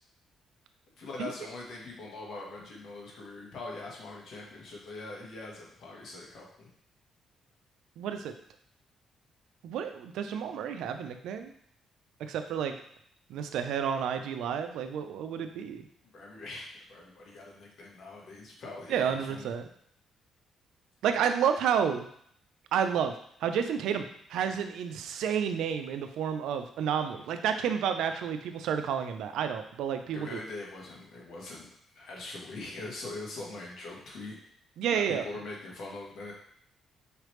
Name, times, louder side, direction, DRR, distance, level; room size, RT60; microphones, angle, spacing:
voice 1, 1.0-6.7 16.1-19.5 30.1-31.7 31.9-34.4 34.9-36.3, left 2 dB, 65° left, -2 dB, 1.4 m, -42 dB
voice 2, 8.0-8.3 9.6-11.5 12.2-12.7 13.3-15.9 18.9-19.7 21.0-22.1 22.7-23.1 23.4-24.0 24.3-30.4 34.8-35.3, right 8 dB, 85° right, 7 dB, 0.4 m, -30 dB
4.8 x 3.3 x 3.1 m, 0.66 s
cardioid pair, 90°, 0 cm